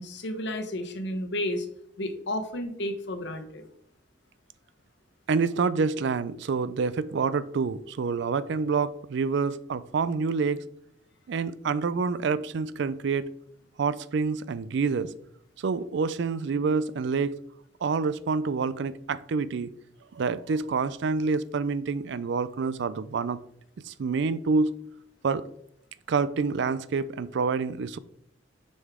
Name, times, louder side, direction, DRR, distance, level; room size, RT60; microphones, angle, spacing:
voice 1, 0.0-1.7 2.0-3.7, left 1 dB, 65° left, 1.0 m, -32 dB
voice 2, 5.3-10.6 11.3-13.3 13.8-15.1 15.6-17.3 17.8-19.7 20.1-23.4 23.8-24.7 25.2-25.5 26.1-28.0, right 5 dB, 65° right, 0.4 m, -27 dB
6.6 x 5.3 x 3.6 m
head